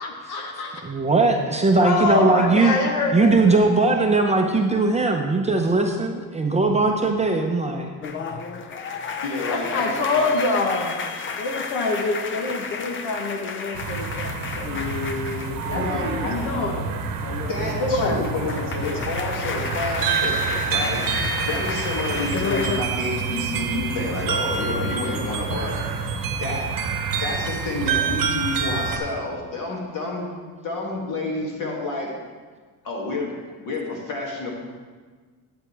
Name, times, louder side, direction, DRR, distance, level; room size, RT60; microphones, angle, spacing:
voice 1, 0.0-0.8 1.8-3.7 9.5-10.9 11.4-14.7 15.7-16.9 17.7-18.3, left 3 dB, 75° left, 3 dB, 1.2 m, -26 dB
voice 2, 0.8-2.8 3.1-7.9, right 3 dB, 15° right, 2 dB, 0.6 m, -19 dB
sound 1, 8.0-16.8 17.1-22.8, left 5 dB, 30° left, 0.6 m, -31 dB
voice 3, 9.2-10.3 15.7-16.3 17.5-18.5 18.8-21.0 21.4-25.8 26.4-26.7 27.2-30.3 30.6-32.1 32.8-33.3 33.6-34.5, left 2 dB, 50° left, -2 dB, 2.5 m, -29 dB
sound 2, 13.7-29.0, right 5 dB, 55° right, 1.0 m, -27 dB
10.5 x 8.9 x 3.4 m, 1.5 s
cardioid pair, 130°, 40 cm